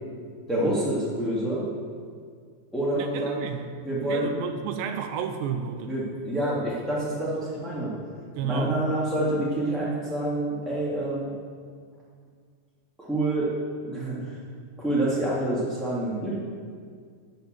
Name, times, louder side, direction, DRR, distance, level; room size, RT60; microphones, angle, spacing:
voice 1, 0.5-1.7 2.7-3.4 3.8-4.3 5.8-7.9 8.4-11.3 13.0-13.5 13.8-14.4 14.8-16.3, right 1 dB, ahead, -8 dB, 1.6 m, -27 dB
voice 2, 3.0-5.9 8.4-8.8, right 6 dB, 80° right, 7 dB, 2.9 m, -32 dB
13.5 x 9.0 x 8.0 m, 2.1 s
omnidirectional pair, 5.1 m